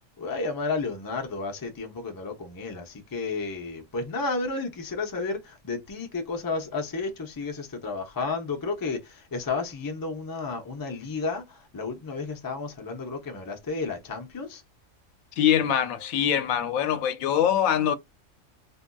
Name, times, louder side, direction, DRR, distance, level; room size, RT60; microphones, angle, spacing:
voice 1, 0.2-14.6, left 4 dB, 25° left, 0.4 m, -32 dB
voice 2, 15.3-18.0, left 9 dB, 85° left, 1.0 m, -23 dB
3.5 x 2.5 x 2.2 m
omnidirectional pair, 1.4 m